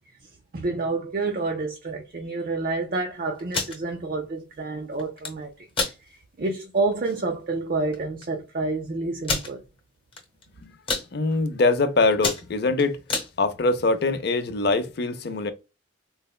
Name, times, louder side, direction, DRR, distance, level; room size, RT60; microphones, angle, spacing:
voice 1, 0.5-5.5 6.0-9.6, right 3 dB, 50° right, 0.5 m, -28 dB
sound 1, 3.4-3.8 5.0-5.3 5.7-6.0 6.5-6.6 6.9-7.1 7.9-8.0 8.2-8.3 9.2-9.5 10.1-10.4 10.7-11.1 11.6-11.8 12.1-13.3, left 4 dB, 30° left, 0.9 m, -28 dB
voice 2, 11.1-13.0 13.4-15.5, left 3 dB, 55° left, 0.5 m, -23 dB
4.0 x 2.1 x 2.2 m
head